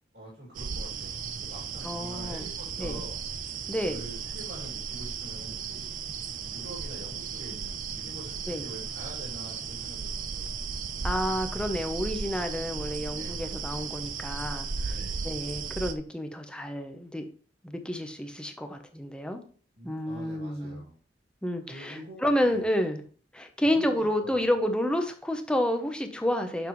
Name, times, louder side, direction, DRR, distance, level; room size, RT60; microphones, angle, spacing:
voice 1, 0.1-3.2 3.9-5.9 6.5-10.8 13.1-13.5 14.9-15.3 19.7-20.9 21.7-22.7 23.6-24.4, right 1 dB, 65° right, -4 dB, 2.4 m, -45 dB
sound 1, 0.5-15.9, right 5 dB, 50° right, 0.5 m, -35 dB
voice 2, 1.8-2.4 2.8-3.0 3.7-4.0 8.5-8.6 11.0-14.9 15.2-17.2 17.6-19.4 19.8-20.8 21.4-23.0 23.3-26.7, equal, 5° left, 6 dB, 0.8 m, -30 dB
7.0 x 5.5 x 3.1 m, 0.43 s
head